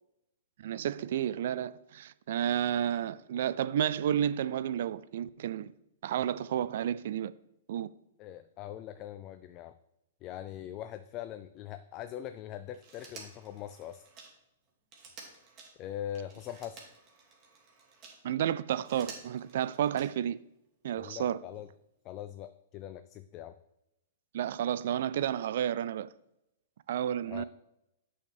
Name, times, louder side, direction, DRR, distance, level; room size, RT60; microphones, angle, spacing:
voice 1, 0.6-5.7 6.0-7.3 7.7-7.9 18.2-20.4 20.8-21.4 24.3-26.1 26.9-27.4, right 10 dB, 60° right, 0.3 m, -31 dB
voice 2, 8.2-9.7 10.2-14.0 15.8-16.8 21.0-21.7 22.0-23.6 27.3-27.4, left 11 dB, 35° left, 0.4 m, -42 dB
Telephone, 12.7-18.2 18.7-20.4 21.7-21.8, right 4 dB, 35° right, 2.3 m, -52 dB
8.4 x 6.4 x 3.4 m
hypercardioid pair, 115°, 0 cm